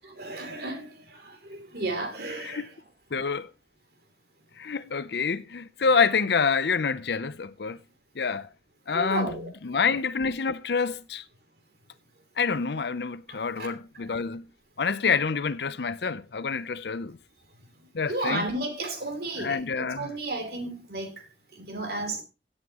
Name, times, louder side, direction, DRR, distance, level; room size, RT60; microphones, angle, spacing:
voice 1, 0.2-2.7 8.9-9.5 13.3-13.7 18.1-21.1 21.6-22.2, right 2 dB, 60° right, 3.0 m, -33 dB
voice 2, 3.1-3.5 4.6-7.8 8.2-8.5 8.9-9.3 9.6-11.2 12.4-14.5 14.8-17.2 17.9-18.5 19.4-20.1, left 5 dB, 65° left, 0.6 m, -27 dB
16.5 x 8.2 x 3.0 m
head